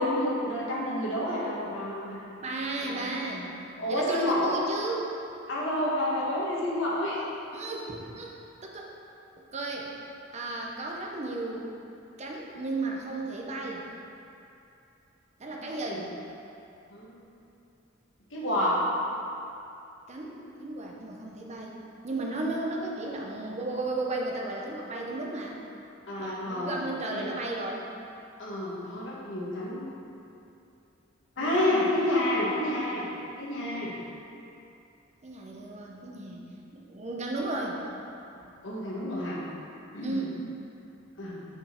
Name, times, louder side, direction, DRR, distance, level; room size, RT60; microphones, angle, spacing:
voice 1, 0.0-2.3 2.8-3.1 3.8-4.6 5.5-7.2 15.5-16.0 16.9-17.2 18.3-18.8 26.1-26.8 27.1-27.2 28.4-29.9 31.4-33.0 33.4-33.9 38.6-39.4 39.9-40.3 41.2-41.4, left 1 dB, 65° left, -6 dB, 1.5 m, -29 dB
voice 2, 2.4-3.6 3.9-5.1 7.5-8.3 8.6-8.9 9.5-9.9 10.3-11.7 12.2-13.9 15.4-16.1 20.1-21.7 22.0-25.6 26.2-27.9 31.4-31.6 32.0-32.2 35.2-36.5 36.7-37.8 38.4-38.5 40.0-40.4, right 2 dB, 35° right, -1 dB, 0.7 m, -34 dB
5.9 x 5.1 x 4.4 m, 2.7 s
head